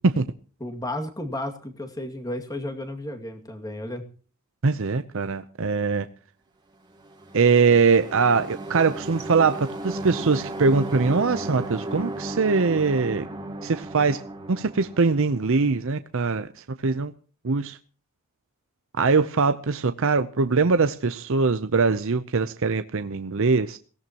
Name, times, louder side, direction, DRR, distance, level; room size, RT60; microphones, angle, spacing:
voice 1, 0.6-4.0, left 1 dB, 15° left, 2.2 m, -33 dB
voice 2, 4.6-6.1 7.3-13.3 13.6-14.2 14.5-16.5 16.8-17.1 17.4-17.8 19.0-23.8, right 4 dB, 65° right, 0.7 m, -22 dB
sound 1, 7.0-15.7, right 1 dB, 20° right, 2.6 m, -35 dB
23.0 x 17.5 x 3.0 m
head